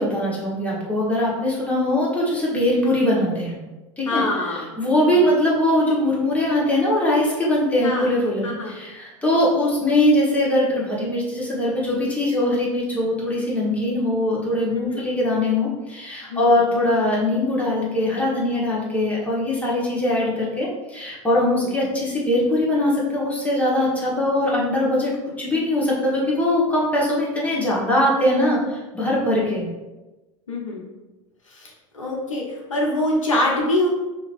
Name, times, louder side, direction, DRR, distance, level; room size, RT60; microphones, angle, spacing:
voice 1, 0.0-3.6 4.0-4.2 4.5-25.1 25.4-29.7, left 1 dB, 10° left, -5 dB, 1.3 m, -21 dB
voice 2, 4.0-4.6 5.0-5.2 7.8-8.1 8.4-8.7 14.7-15.1 16.3-16.6 21.6-21.7 30.5-30.8 31.5-33.9, left 1 dB, 80° left, -2 dB, 0.9 m, -25 dB
5.5 x 2.9 x 2.6 m, 1.1 s
figure-of-eight pair, 85°, 16 cm